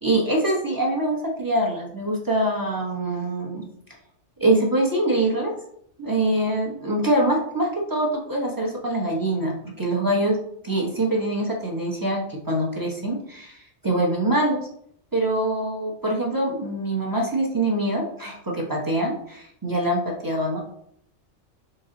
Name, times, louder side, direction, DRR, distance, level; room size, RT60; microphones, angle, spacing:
voice 1, 0.0-3.7 4.4-5.5 6.0-10.4 10.6-14.7 15.1-20.6, right 1 dB, 20° right, -2 dB, 0.6 m, -24 dB
4.1 x 2.5 x 3.8 m, 0.70 s
omnidirectional pair, 1.2 m